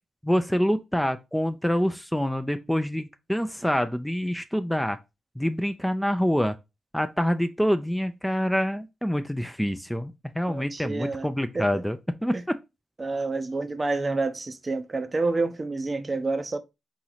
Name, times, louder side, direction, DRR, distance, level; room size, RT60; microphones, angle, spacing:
voice 1, 0.2-5.0 5.4-6.6 6.9-12.0 12.2-12.3, equal, 5° left, 0.5 m, -26 dB
voice 2, 10.5-11.3 11.5-11.8 12.3-12.4 13.0-16.6, right 3 dB, 35° right, 0.7 m, -28 dB
3.8 x 3.1 x 4.0 m
supercardioid pair, 45°, 0 cm